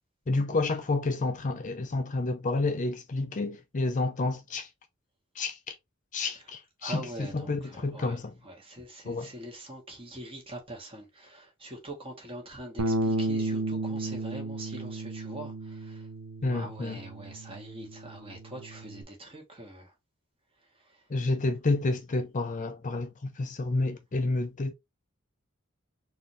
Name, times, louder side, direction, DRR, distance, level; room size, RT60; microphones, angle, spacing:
voice 1, 0.3-4.7 5.3-5.8 6.1-8.3 9.1-9.3 16.4-17.0 21.1-24.7, left 2 dB, 35° left, 0.5 m, -30 dB
voice 2, 6.8-16.1 16.5-19.9 20.6-21.1, right 1 dB, 25° right, 1.6 m, -43 dB
Bass guitar, 12.8-19.0, right 2 dB, 90° right, 0.7 m, -33 dB
4.1 x 2.7 x 3.2 m
head